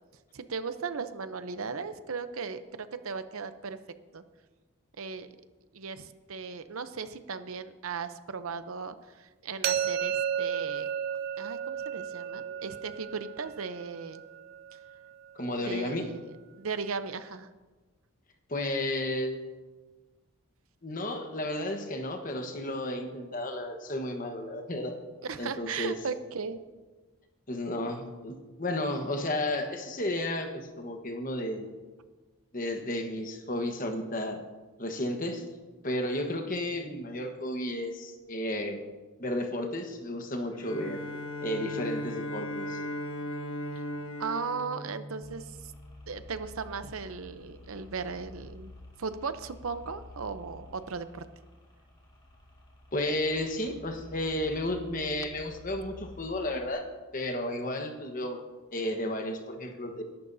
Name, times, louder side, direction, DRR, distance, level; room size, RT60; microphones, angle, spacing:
voice 1, 0.3-3.8 4.1-4.2 5.0-5.3 5.7-10.9 11.4-14.2 15.6-17.5 25.2-26.6 44.2-45.7 46.1-48.7 49.0-51.3, right 5 dB, 80° right, 11 dB, 0.7 m, -37 dB
sound 1, 9.6-15.5, right 8 dB, 45° right, 0.5 m, -33 dB
voice 2, 15.3-16.1 18.5-19.4 20.8-25.0 25.4-26.0 27.5-31.7 32.5-34.4 34.8-35.4 35.8-38.8 39.2-41.0 41.4-42.8 52.9-56.9 57.1-58.4 58.7-60.0, left 1 dB, 40° left, 4 dB, 1.2 m, -33 dB
Bowed string instrument, 40.5-45.7, left 1 dB, 70° left, 1.3 m, -37 dB
sound 2, 45.2-56.7, left 2 dB, 25° left, 3.1 m, -50 dB
21.5 x 11.5 x 2.7 m, 1.3 s
head